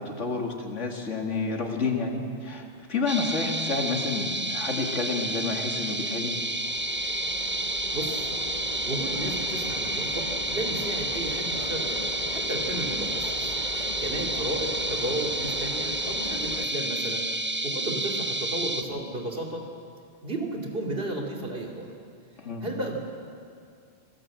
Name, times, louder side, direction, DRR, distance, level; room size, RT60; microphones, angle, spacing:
voice 1, 0.0-6.4 22.4-22.7, left 4 dB, 85° left, 2 dB, 2.6 m, -30 dB
sound 1, 3.1-18.8, right 1 dB, 10° right, 0.8 m, -30 dB
sound 2, 5.8-16.6, left 3 dB, 40° left, 1.3 m, -39 dB
voice 2, 7.9-8.3 8.9-13.5 14.0-17.3 17.6-19.7 20.2-21.9 22.6-23.0, right 1 dB, 55° right, 1 dB, 3.1 m, -33 dB
27.0 x 16.0 x 7.7 m, 2.4 s
omnidirectional pair, 1.2 m